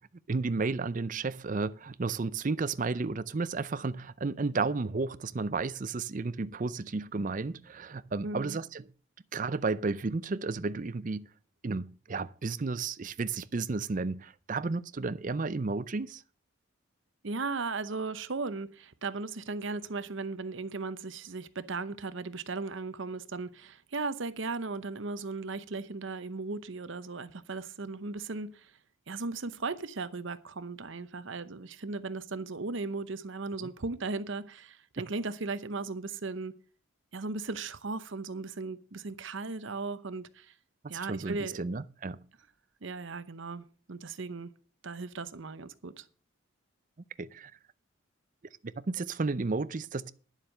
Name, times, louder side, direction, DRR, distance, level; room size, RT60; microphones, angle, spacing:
voice 1, 0.3-8.8 9.3-11.3 11.6-16.2 33.6-33.7 41.1-42.2 47.2-47.5 48.8-50.1, right 3 dB, 40° right, 0.5 m, -32 dB
voice 2, 8.2-8.6 17.2-28.7 29.1-36.5 37.1-40.5 40.9-41.7 42.8-44.5 44.8-46.1, right 3 dB, 65° right, 0.8 m, -37 dB
10.5 x 7.4 x 6.6 m
head